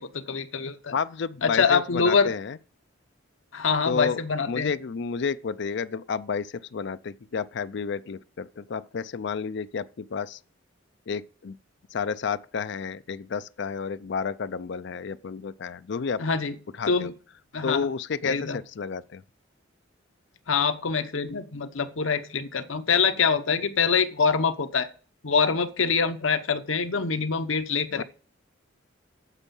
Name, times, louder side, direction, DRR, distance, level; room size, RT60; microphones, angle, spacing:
voice 1, 0.0-0.9 1.4-2.3 3.5-4.7 16.2-16.6 16.8-17.1 17.5-17.9 18.2-18.6 20.5-24.9 25.2-28.0, left 5 dB, 85° left, 0.9 m, -25 dB
voice 2, 0.9-2.6 3.8-4.2 4.5-10.4 11.1-11.6 11.9-16.2 16.8-17.1 17.6-19.2 27.9-28.0, left 5 dB, 60° left, 0.5 m, -31 dB
9.9 x 7.1 x 5.4 m
head